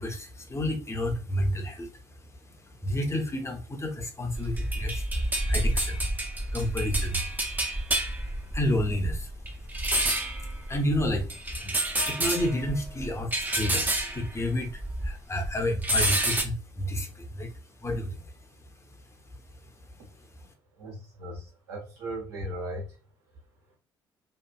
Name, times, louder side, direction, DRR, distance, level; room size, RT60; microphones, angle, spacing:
voice 1, 0.0-6.1 6.5-7.2 7.9-9.4 9.6-9.7 10.2-18.2, left 1 dB, 20° left, 3 dB, 0.7 m, -31 dB
sound 1, 4.4-15.2 15.5-16.4, right 1 dB, 15° right, 0.6 m, -29 dB
voice 2, 20.8-23.0, right 1 dB, 75° right, -3 dB, 1.1 m, -37 dB
2.9 x 2.4 x 2.3 m, 0.33 s
figure-of-eight pair, 45°, 13 cm